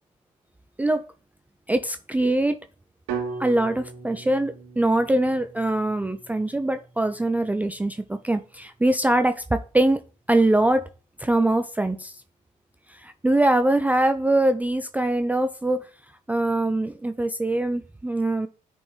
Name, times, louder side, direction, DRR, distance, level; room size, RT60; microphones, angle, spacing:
voice 1, 1.7-2.6 3.4-10.0 10.3-10.9 11.2-12.2 12.9-15.9 16.3-18.5, right 1 dB, 10° right, 0.5 m, -23 dB
sound 1, 3.1-7.1, right 5 dB, 75° right, 1.7 m, -37 dB
10.5 x 4.3 x 3.3 m
hypercardioid pair, 60°, 18 cm